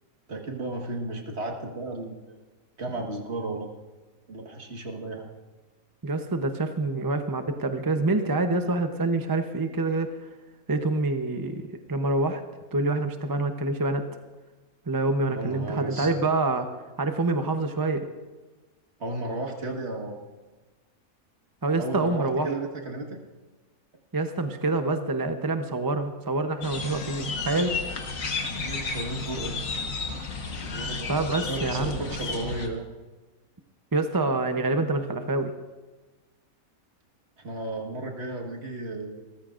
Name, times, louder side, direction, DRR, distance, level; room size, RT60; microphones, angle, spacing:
voice 1, 0.3-2.4 2.8-3.7 4.3-5.3 15.3-16.3 19.0-20.3 21.8-23.2 28.6-29.6 30.5-32.9 37.4-39.3, right 2 dB, 50° right, 1 dB, 1.9 m, -34 dB
voice 2, 6.0-10.2 10.7-12.4 12.7-14.0 14.9-16.7 17.0-18.1 21.6-22.5 24.1-27.8 31.1-32.1 33.9-35.5, right 2 dB, 20° right, 7 dB, 0.5 m, -26 dB
sound 1, 26.6-32.7, left 4 dB, 70° left, 1.7 m, -32 dB
27.0 x 14.0 x 2.5 m, 1.2 s
omnidirectional pair, 1.5 m